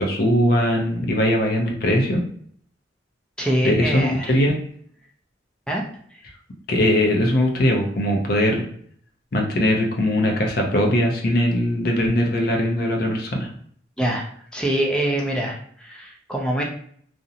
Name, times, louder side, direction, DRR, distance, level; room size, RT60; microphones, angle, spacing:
voice 1, 0.0-2.2 3.6-4.6 6.7-8.6 9.3-13.5, left 1 dB, 55° left, 1 dB, 0.5 m, -20 dB
voice 2, 3.4-4.4 5.7-5.9 14.0-14.3 14.5-16.6, right 1 dB, 5° left, -1 dB, 0.4 m, -24 dB
2.5 x 2.0 x 2.7 m, 0.62 s
head